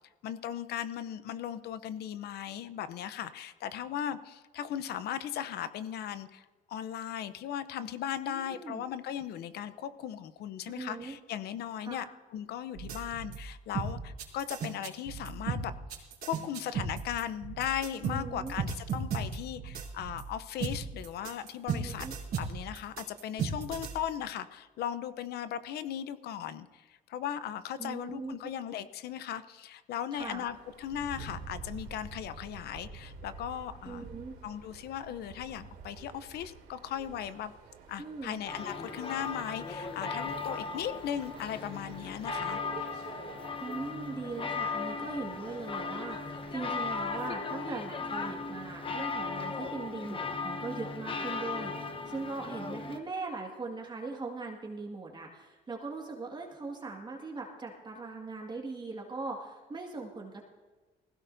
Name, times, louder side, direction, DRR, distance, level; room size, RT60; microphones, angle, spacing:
voice 1, 0.2-12.0 12.3-15.7 16.2-22.1 22.4-34.1 34.4-37.5 37.9-42.6, left 10 dB, 70° left, 13 dB, 0.8 m, -37 dB
voice 2, 8.3-8.8 10.7-11.2 11.8-12.1 18.0-18.5 21.7-22.2 27.8-28.5 30.1-30.4 33.9-34.3 38.0-38.4 43.6-60.4, right 3 dB, 25° right, 0 dB, 2.0 m, -40 dB
sound 1, 12.7-13.4 13.7-20.2 20.6-23.9, right 5 dB, 60° right, 3.3 m, -35 dB
sound 2, 30.2-47.2, right 5 dB, 80° right, 3.0 m, -49 dB
sound 3, 38.5-53.0, left 4 dB, 30° left, 1.1 m, -37 dB
20.0 x 16.5 x 2.7 m, 1.3 s
cardioid pair, 110°, 17 cm